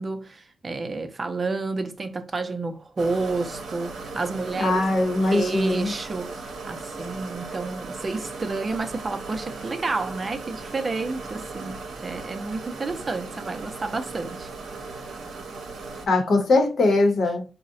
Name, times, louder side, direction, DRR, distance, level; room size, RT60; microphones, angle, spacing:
voice 1, 0.0-4.9 5.2-14.5, right 3 dB, 35° right, 0.4 m, -30 dB
sound 1, 3.0-16.1, right 3 dB, 80° right, 0.7 m, -37 dB
voice 2, 4.5-5.9 16.1-17.4, left 2 dB, 65° left, 0.8 m, -21 dB
3.7 x 2.1 x 2.5 m
cardioid pair, 95°, 0 cm